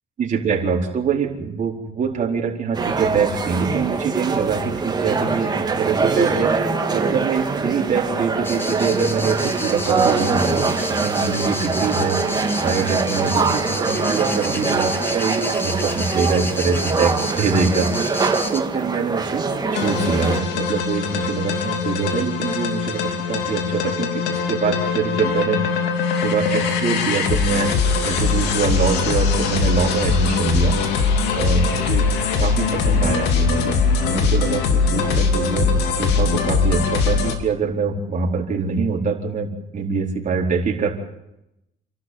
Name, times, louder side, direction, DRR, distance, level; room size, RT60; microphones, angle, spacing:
voice 1, 0.2-19.5 19.7-27.7 28.0-32.1 32.4-35.7 36.0-40.9, right 5 dB, 45° right, 0 dB, 4.5 m, -24 dB
sound 1, 2.7-20.4, right 4 dB, 25° right, 3.0 m, -23 dB
sound 2, 8.4-18.6, left 2 dB, 15° left, 1.8 m, -30 dB
sound 3, 19.7-37.3, left 5 dB, 90° left, 2.7 m, -21 dB
28.5 x 12.5 x 9.6 m, 0.88 s
cardioid pair, 110°, 17 cm